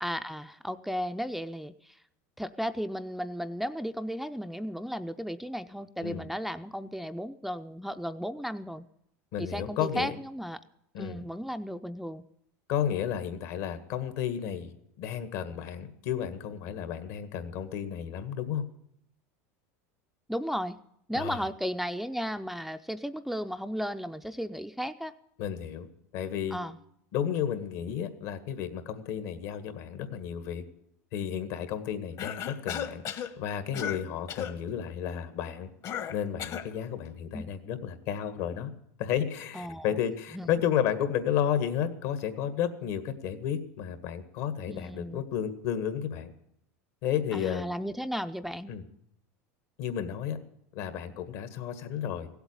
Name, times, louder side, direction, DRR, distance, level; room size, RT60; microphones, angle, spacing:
voice 1, 0.0-2.0 2.4-8.8 9.4-10.6 11.0-12.2 20.3-20.8 21.1-25.1 26.5-26.8 37.3-37.4 39.5-40.0 40.3-40.5 44.7-45.2 47.3-48.7, equal, ahead, 9 dB, 0.5 m, -35 dB
voice 2, 9.3-10.1 10.9-11.3 12.7-18.7 21.1-21.4 25.4-25.9 26.1-26.6 27.1-30.6 31.1-33.0 33.4-35.7 36.1-38.7 39.0-46.3 47.0-47.6 48.7-48.8 49.8-50.4 50.8-52.3, left 9 dB, 65° left, 10 dB, 1.8 m, -32 dB
Cough, 32.2-33.3 33.7-34.0 34.3-34.6 35.8-36.7, left 9 dB, 45° left, 1.3 m, -35 dB
16.0 x 8.1 x 9.7 m, 0.75 s
supercardioid pair, 110°, 8 cm